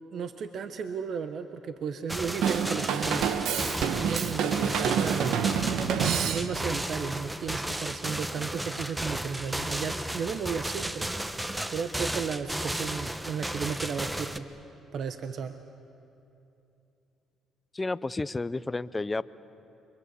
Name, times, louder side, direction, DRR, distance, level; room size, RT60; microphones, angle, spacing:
voice 1, 0.1-3.3 3.8-5.4 6.2-11.4 11.7-14.5 14.9-15.6, right 6 dB, 60° right, 9 dB, 1.1 m, -34 dB
sound 1, 2.1-14.4, right 1 dB, 10° right, 1.1 m, -34 dB
Drum kit / Drum, 2.4-6.8, right 7 dB, 75° right, 1.3 m, -28 dB
voice 2, 17.7-19.2, left 2 dB, 20° left, 16 dB, 0.6 m, -31 dB
28.5 x 24.0 x 8.3 m, 2.8 s
cardioid pair, 85°, 0 cm